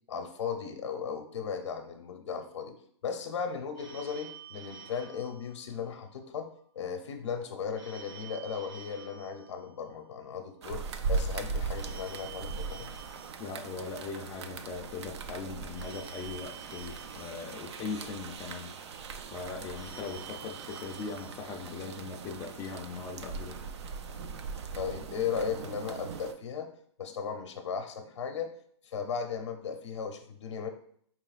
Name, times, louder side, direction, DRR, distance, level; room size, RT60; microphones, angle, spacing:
voice 1, 0.1-2.7 3.0-6.5 6.7-12.9 24.7-26.7 27.0-28.5 28.8-30.7, left 6 dB, 80° left, 6 dB, 0.7 m, -36 dB
Telephone, 3.7-6.2 7.7-10.2 11.7-14.2 15.7-18.2 19.7-22.2, right 7 dB, 90° right, 1.5 m, -50 dB
sound 1, 10.6-26.3, right 4 dB, 70° right, 0.4 m, -39 dB
voice 2, 13.4-18.7 19.3-23.5, left 4 dB, 15° left, 0 dB, 0.4 m, -40 dB
4.8 x 3.0 x 2.4 m, 0.62 s
hypercardioid pair, 155°, 15 cm